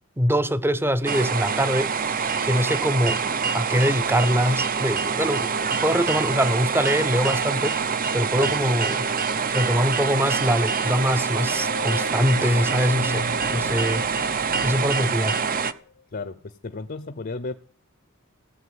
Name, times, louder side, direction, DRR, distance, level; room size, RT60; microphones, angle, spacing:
voice 1, 0.2-3.2 3.5-5.5 5.8-7.8 8.1-9.1 9.5-15.4, equal, 10° right, 0.8 m, -23 dB
sound 1, 1.0-15.7, right 5 dB, 40° right, 0.8 m, -25 dB
sound 2, 11.3-15.9, left 2 dB, 90° left, 1.3 m, -37 dB
voice 2, 16.1-17.5, left 3 dB, 45° left, 0.7 m, -33 dB
16.5 x 8.5 x 9.5 m
head